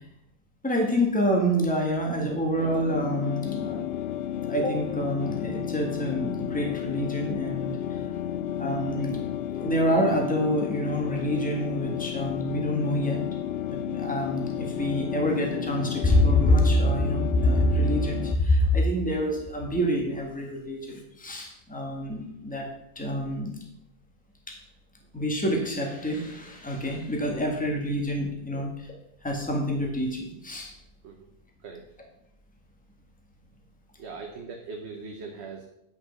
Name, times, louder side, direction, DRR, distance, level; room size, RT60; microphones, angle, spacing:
voice 1, 0.6-3.9 4.5-8.0 8.6-9.2 9.6-13.2 13.7-22.7 22.9-23.5 24.5-24.6 25.1-28.9 29.2-30.7, equal, 5° left, 0 dB, 1.6 m, -26 dB
sound 1, 2.6-18.4, left 10 dB, 75° left, 0.5 m, -32 dB
voice 2, 34.0-35.7, right 4 dB, 50° right, 3 dB, 1.1 m, -40 dB
9.7 x 5.8 x 5.8 m, 0.82 s
omnidirectional pair, 1.5 m